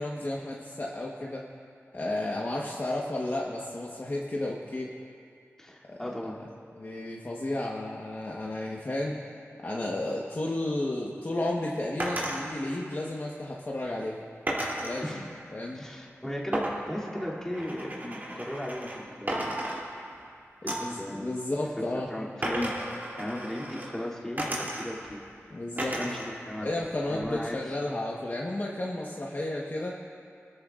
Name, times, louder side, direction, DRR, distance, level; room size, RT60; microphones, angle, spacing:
voice 1, 0.0-1.4 1.9-4.9 5.9-6.0 6.8-9.2 9.6-14.2 14.8-15.2 15.5-15.9 20.7-22.1 25.5-26.0 26.6-29.9, left 1 dB, 40° left, -3 dB, 1.2 m, -32 dB
voice 2, 5.6-6.4 15.0-15.3 15.7-19.6 20.6-21.3 21.8-22.7 23.2-25.2 25.7-26.7 27.1-27.6, left 1 dB, 10° left, -6 dB, 2.8 m, -36 dB
sound 1, 12.0-12.4 14.5-15.0 16.5-19.0 19.3-20.2 20.7-21.0 22.4-23.9 24.4-25.1 25.8-26.3 26.7-27.5, right 1 dB, 40° right, 3.0 m, -34 dB
25.0 x 13.5 x 2.5 m, 2.3 s
wide cardioid pair, 85°, 5 cm